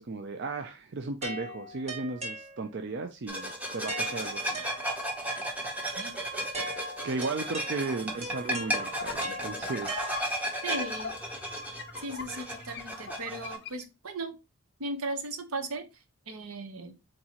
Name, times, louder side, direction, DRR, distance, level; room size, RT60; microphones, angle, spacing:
voice 1, 0.0-4.6 7.0-10.6, right 3 dB, 50° right, 0.4 m, -35 dB
sound 1, 1.2-3.0 3.9-5.3 6.5-10.6, right 1 dB, 30° right, 1.3 m, -41 dB
sound 2, 3.3-13.6, right 1 dB, 5° right, 0.7 m, -35 dB
sound 3, 7.8-13.8, left 6 dB, 50° left, 0.5 m, -44 dB
voice 2, 10.6-11.1 12.0-14.4 14.8-15.9 16.3-17.0, right 2 dB, 75° right, 1.0 m, -36 dB
4.5 x 3.9 x 2.9 m
head